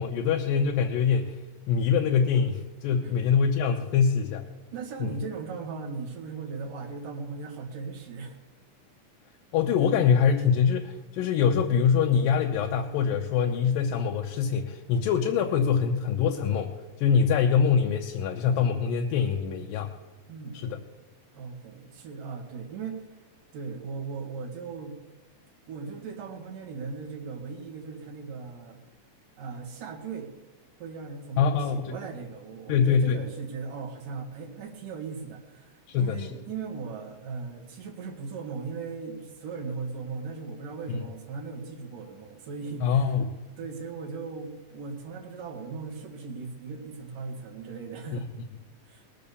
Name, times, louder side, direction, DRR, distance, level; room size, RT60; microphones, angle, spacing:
voice 1, 0.0-1.4 1.7-4.4 5.0-5.1 9.5-16.7 17.0-19.9 20.5-20.8 31.4-32.0 32.7-33.2 35.9-36.4 42.8-43.3 48.1-48.2, left 6 dB, 90° left, 2 dB, 2.6 m, -24 dB
voice 2, 4.7-8.4 20.3-20.8 21.3-23.1 23.5-24.9 25.7-28.8 29.4-30.3 30.8-43.2 43.6-48.3 48.8-49.0, right 4 dB, 70° right, 2 dB, 3.6 m, -38 dB
20.5 x 7.7 x 6.9 m, 1.2 s
omnidirectional pair, 3.9 m